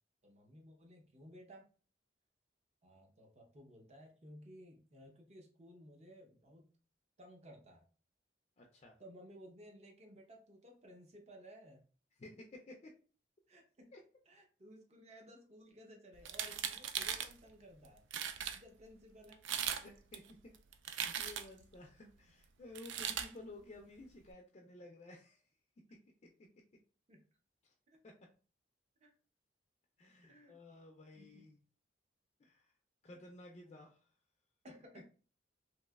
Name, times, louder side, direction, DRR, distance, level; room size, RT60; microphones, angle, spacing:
voice 1, 0.2-1.6 2.8-6.7 7.2-7.8 9.0-11.8 13.5-13.9 14.3-18.0 18.5-19.4 22.0-22.1 27.1-27.2 27.9-28.0 29.0-29.1 30.3-30.6 31.1-31.5 33.6-33.9 34.6-35.0, equal, 35° right, 2 dB, 0.6 m, -57 dB
voice 2, 8.6-9.0 12.2-12.9 13.9-14.0 19.8-20.5 20.9-25.4 26.2-26.5 28.0-28.1 30.0-31.6 32.4-32.7 33.0-34.0, left 2 dB, 35° left, 0 dB, 0.4 m, -54 dB
sound 1, 16.2-17.3 17.8-17.9 18.1-18.6 19.3-19.8 20.1-21.6 22.7-23.3, right 9 dB, 85° right, 0.3 m, -39 dB
3.0 x 2.8 x 2.2 m, 0.38 s
head